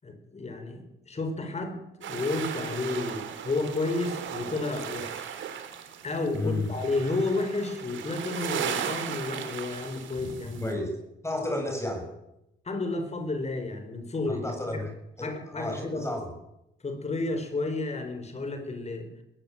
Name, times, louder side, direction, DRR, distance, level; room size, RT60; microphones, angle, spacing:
voice 1, 0.0-5.4 6.0-10.7 12.6-14.5 15.2-16.1 16.8-19.1, left 3 dB, 35° left, 7 dB, 5.5 m, -31 dB
sound 1, 2.0-10.7, right 8 dB, 70° right, 3.3 m, -36 dB
voice 2, 6.3-6.7 10.6-10.9 11.2-12.1 14.3-14.9 15.2-16.3, left 2 dB, 15° left, 4 dB, 7.4 m, -32 dB
20.5 x 16.0 x 9.2 m, 0.87 s
cardioid pair, 90°, 20 cm